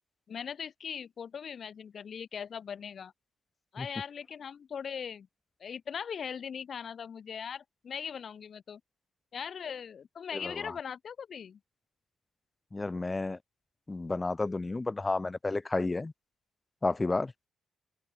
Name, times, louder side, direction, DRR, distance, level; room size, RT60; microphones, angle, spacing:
voice 1, 0.3-3.1 3.7-5.3 5.6-8.8 9.3-11.6, left 7 dB, 50° left, 2.7 m, -40 dB
voice 2, 12.7-13.4 13.9-16.1 16.8-17.5, left 3 dB, 20° left, 0.5 m, -31 dB
open air
cardioid pair, 90°, 0 cm